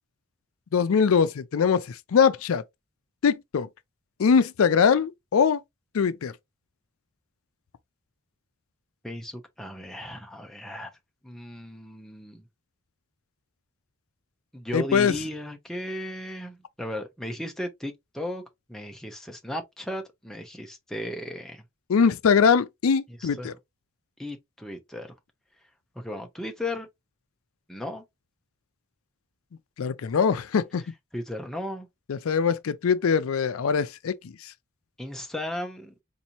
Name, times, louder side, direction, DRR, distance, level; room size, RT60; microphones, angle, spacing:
voice 1, 0.7-2.6 3.2-3.7 4.2-5.6 5.9-6.3 14.7-15.2 21.9-23.5 29.8-30.8 32.1-34.3, left 6 dB, 80° left, 0.4 m, -22 dB
voice 2, 9.0-10.9 11.2-12.4 14.5-18.4 18.7-21.6 23.2-23.5 24.2-25.1 26.0-26.9 27.7-28.0 31.1-31.9 35.0-35.9, left 1 dB, ahead, 0.6 m, -35 dB
4.1 x 2.6 x 2.8 m
head